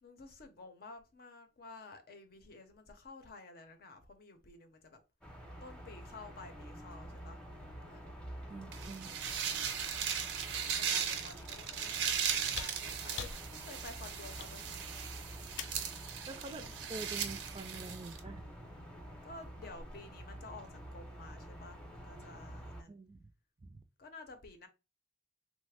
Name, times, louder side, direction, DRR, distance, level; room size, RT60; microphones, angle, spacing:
voice 1, 0.0-5.0 5.6-7.4 7.9-8.0 8.7-9.9 10.8-14.8 16.6-16.8 19.2-23.0 24.0-24.7, left 3 dB, 60° left, 0.7 m, -52 dB
sound 1, 5.2-22.8, equal, 5° left, 0.7 m, -49 dB
voice 2, 8.5-9.1 16.3-18.4 22.9-23.3 23.6-23.8, right 3 dB, 30° right, 0.4 m, -46 dB
sound 2, 8.7-18.2, right 8 dB, 85° right, 0.5 m, -38 dB
sound 3, 12.5-15.9 17.3-17.4, left 8 dB, 80° left, 0.3 m, -46 dB
3.2 x 2.1 x 3.3 m
head